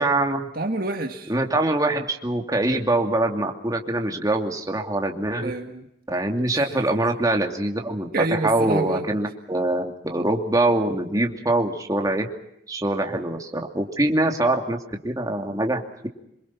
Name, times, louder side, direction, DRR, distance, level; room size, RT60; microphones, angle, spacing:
voice 1, 0.0-0.4 1.3-5.5 6.1-12.3 12.7-16.1, right 2 dB, 20° right, 3 dB, 2.7 m, -24 dB
voice 2, 0.6-1.3 5.4-5.9 6.5-6.6 8.1-9.1, right 2 dB, 55° right, 5 dB, 1.7 m, -27 dB
27.0 x 23.5 x 6.0 m, 0.78 s
head